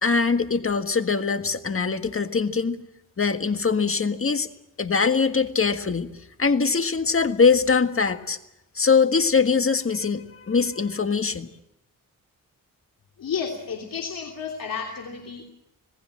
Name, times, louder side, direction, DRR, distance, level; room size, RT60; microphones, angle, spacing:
voice 1, 0.0-2.8 3.2-4.5 4.8-8.4 8.7-11.5, left 5 dB, 40° left, 8 dB, 1.7 m, -22 dB
voice 2, 13.2-15.5, left 6 dB, 80° left, 1 dB, 3.0 m, -31 dB
27.0 x 18.5 x 7.5 m, 0.84 s
cardioid pair, 85°, 33 cm